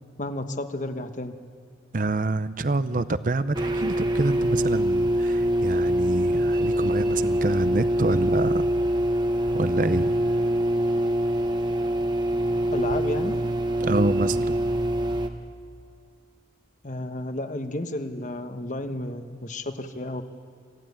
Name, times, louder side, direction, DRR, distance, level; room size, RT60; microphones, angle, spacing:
voice 1, 0.2-1.3 12.7-13.4 16.8-20.2, left 1 dB, 40° left, 8 dB, 1.2 m, -32 dB
voice 2, 1.9-8.7 9.5-10.1 13.8-14.6, right 2 dB, 45° right, 13 dB, 0.7 m, -27 dB
sound 1, 3.5-15.3, right 1 dB, 25° right, 1.1 m, -24 dB
25.0 x 15.0 x 9.5 m, 2.3 s
head